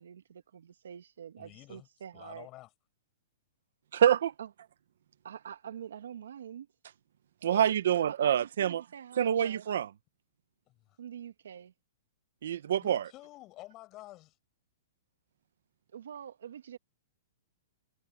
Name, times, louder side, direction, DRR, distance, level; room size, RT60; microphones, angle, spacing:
voice 1, 0.0-2.5 4.4-4.5 5.2-6.7 8.1-9.7 11.0-11.7 15.9-16.8, right 9 dB, 85° right, 2.2 m, -45 dB
voice 2, 1.4-1.9 2.1-2.7 7.5-7.8 10.7-11.0 12.8-14.4, left 17 dB, 25° left, 7.2 m, -50 dB
voice 3, 3.9-4.3 7.4-8.8 9.2-9.9 12.4-13.0, right 9 dB, 70° right, 1.1 m, -26 dB
hypercardioid pair, 170°, 0 cm